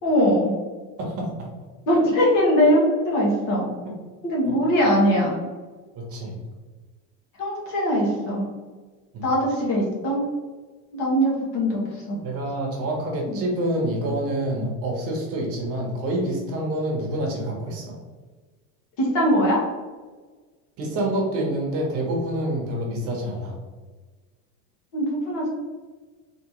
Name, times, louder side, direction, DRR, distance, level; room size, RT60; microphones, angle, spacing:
voice 1, 0.0-0.5 1.9-3.7 4.2-5.4 7.4-8.5 9.2-10.2 10.9-12.2 19.0-19.6 24.9-25.5, equal, 50° left, -3 dB, 1.5 m, -21 dB
voice 2, 1.0-1.5 3.8-4.0 4.4-4.7 5.9-6.4 9.1-9.3 12.2-18.0 20.8-23.6, right 1 dB, 40° right, 0 dB, 1.0 m, -27 dB
4.2 x 3.0 x 3.0 m, 1.4 s
cardioid pair, 165°, 36 cm